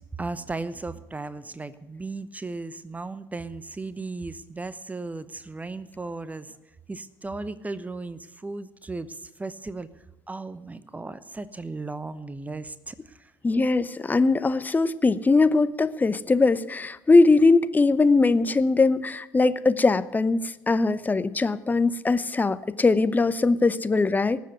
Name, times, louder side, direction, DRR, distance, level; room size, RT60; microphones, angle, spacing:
voice 1, 0.0-6.5 6.9-13.3, right 3 dB, 15° right, 15 dB, 0.9 m, -36 dB
voice 2, 13.4-24.4, left 3 dB, 15° left, 15 dB, 0.8 m, -21 dB
19.0 x 7.7 x 8.1 m, 1.0 s
figure-of-eight pair, 65°, 10 cm